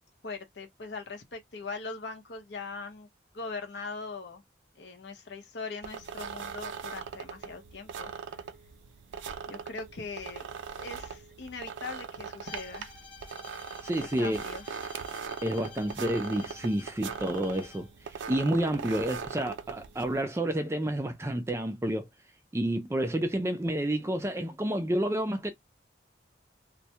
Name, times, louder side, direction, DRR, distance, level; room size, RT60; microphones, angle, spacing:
voice 1, 0.2-3.1 3.3-4.4 4.7-8.1 9.5-10.5 10.8-12.9 14.0-14.7, left 4 dB, 70° left, 0.7 m, -41 dB
sound 1, 5.8-20.2, right 6 dB, 85° right, 0.4 m, -40 dB
Bowed string instrument, 12.4-17.9, left 5 dB, 5° left, 0.9 m, -50 dB
voice 2, 13.8-14.4 15.4-17.9 18.3-22.1 22.5-25.5, right 1 dB, 15° right, 0.3 m, -29 dB
2.1 x 2.1 x 2.7 m
head